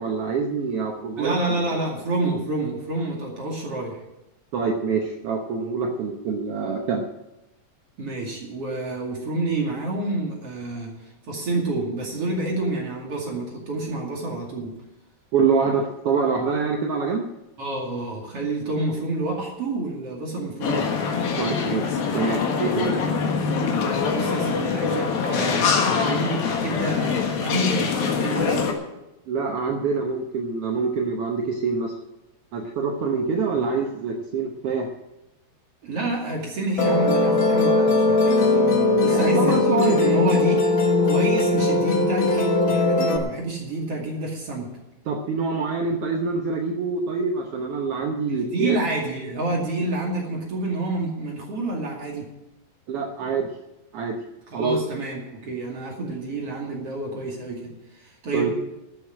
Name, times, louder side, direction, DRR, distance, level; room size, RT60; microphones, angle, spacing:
voice 1, 0.0-1.8 4.5-7.0 15.3-17.3 21.4-22.9 29.3-32.0 32.5-34.9 39.1-40.0 45.1-48.8 52.9-53.5 53.9-54.2 54.5-54.8 58.3-58.5, right 5 dB, 75° right, 2 dB, 1.3 m, -25 dB
voice 2, 1.2-4.0 8.0-14.8 17.6-20.9 24.1-28.6 33.6-33.9 35.8-44.7 48.3-52.3 54.5-58.5, right 2 dB, 45° right, -2 dB, 3.0 m, -28 dB
sound 1, 20.6-28.7, left 5 dB, 85° left, 3.6 m, -24 dB
Musical instrument, 36.8-43.2, left 3 dB, 55° left, 1.4 m, -20 dB
12.5 x 7.1 x 9.7 m, 0.94 s
omnidirectional pair, 4.1 m